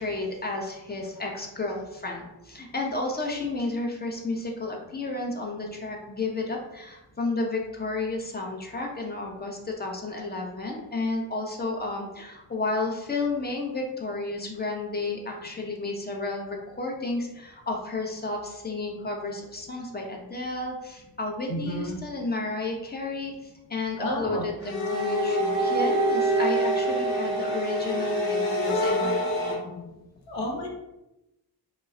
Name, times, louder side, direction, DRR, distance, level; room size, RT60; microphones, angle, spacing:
voice 1, 0.0-29.8, left 3 dB, 25° left, 1 dB, 0.6 m, -32 dB
voice 2, 21.5-22.0 24.0-24.4 30.3-30.7, equal, 80° left, -1 dB, 0.9 m, -31 dB
sound 1, 24.6-29.5, right 1 dB, 40° left, 1.0 m, -25 dB
2.2 x 2.0 x 3.6 m, 0.93 s
cardioid pair, 70°, 44 cm